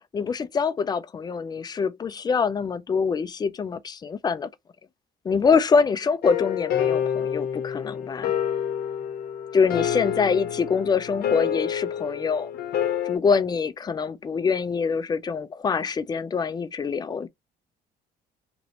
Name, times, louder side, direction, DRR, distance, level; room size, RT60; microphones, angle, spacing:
voice 1, 0.1-4.5 5.2-8.3 9.5-12.5 13.0-17.3, left 5 dB, 25° left, 0.4 m, -25 dB
sound 1, 6.2-13.2, left 9 dB, 65° left, 0.7 m, -28 dB
3.0 x 2.6 x 2.9 m
cardioid pair, 110°, 17 cm